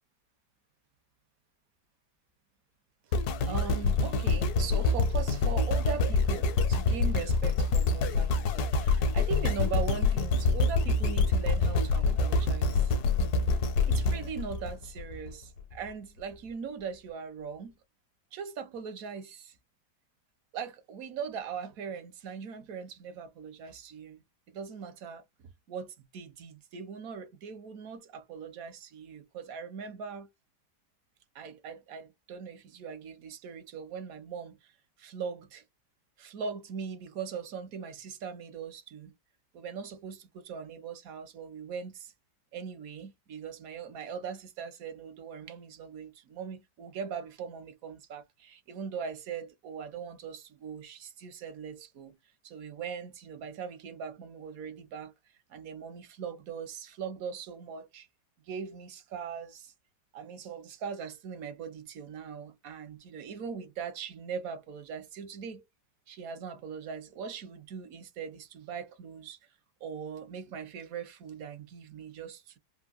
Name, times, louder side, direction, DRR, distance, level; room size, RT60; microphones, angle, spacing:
sound 1, 3.1-15.3 15.9-16.0, left 3 dB, 70° left, 1.2 m, -26 dB
voice 1, 3.5-12.9 13.9-17.8 18.3-19.6 20.5-30.3 31.3-34.7 35.0-35.6 36.2-39.1 39.5-42.1 42.5-52.2 52.4-55.1 55.5-58.1 58.4-59.7 60.1-65.6 66.1-69.4 69.8-72.6, right 6 dB, 65° right, 1.1 m, -40 dB
3.5 x 2.0 x 2.3 m
omnidirectional pair, 1.8 m